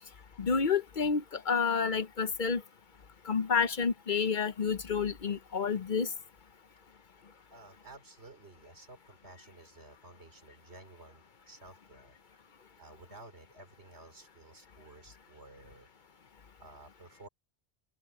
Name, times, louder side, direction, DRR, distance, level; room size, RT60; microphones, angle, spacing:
voice 1, 0.4-2.6 3.3-6.1, left 5 dB, 50° left, 0.9 m, -29 dB
voice 2, 7.5-12.2 12.8-15.9 16.6-17.3, right 2 dB, 85° right, 3.7 m, -53 dB
open air
omnidirectional pair, 1.1 m